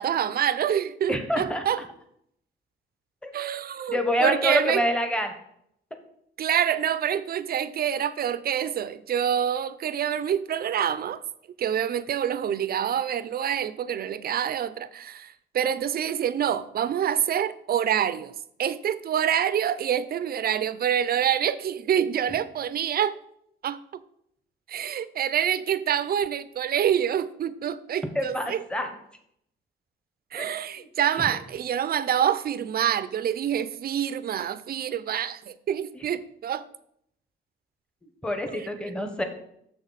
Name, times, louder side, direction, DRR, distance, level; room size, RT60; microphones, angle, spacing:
voice 1, 0.0-1.8 3.3-4.8 6.4-11.2 11.6-18.3 18.6-23.1 23.6-23.8 24.7-28.6 30.3-36.7 38.5-38.7, right 9 dB, 50° right, 0.5 m, -26 dB
voice 2, 1.1-1.6 3.2-3.3 3.9-5.3 28.1-28.9 30.3-30.5 30.7-30.9 35.9-36.0 38.2-39.2, left 1 dB, 5° left, 1.1 m, -27 dB
6.6 x 6.2 x 4.0 m
cardioid pair, 90°, 20 cm